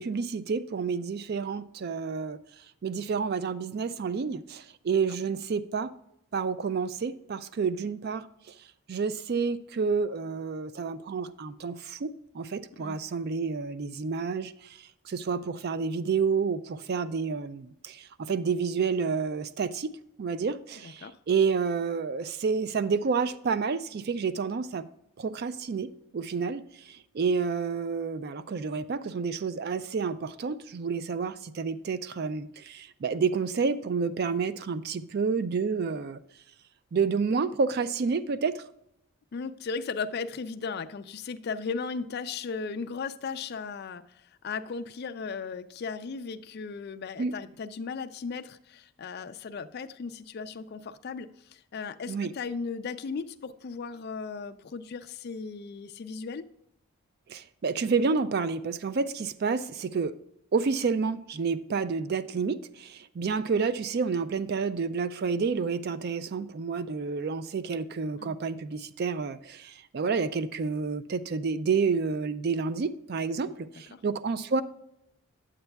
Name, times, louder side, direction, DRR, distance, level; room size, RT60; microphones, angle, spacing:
voice 1, 0.0-2.4 2.8-5.9 6.3-8.3 8.9-12.1 12.3-19.9 20.2-24.9 25.2-36.2 36.9-38.6 47.2-47.3 52.1-52.3 57.3-60.1 60.5-74.6, right 5 dB, 45° right, 0.3 m, -29 dB
voice 2, 20.8-21.2 39.3-44.0 44.4-56.5 68.2-68.4 73.9-74.0, left 5 dB, 45° left, 0.3 m, -36 dB
8.7 x 8.0 x 2.2 m
head